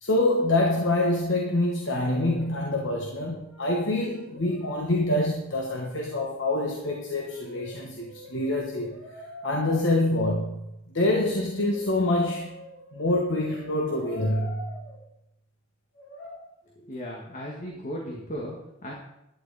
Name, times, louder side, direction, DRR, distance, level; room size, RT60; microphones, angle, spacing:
voice 1, 0.0-9.0 9.4-12.6 12.9-14.8, left 1 dB, 60° left, 0 dB, 1.3 m, -26 dB
Brass instrument, 2.2-2.8 3.0-5.6 6.6-9.8 11.1-15.0 15.9-16.4, left 1 dB, 80° left, 4.6 m, -46 dB
voice 2, 16.8-18.6 18.8-18.9, equal, 40° left, -2 dB, 1.6 m, -36 dB
12.0 x 9.6 x 4.1 m, 0.87 s
head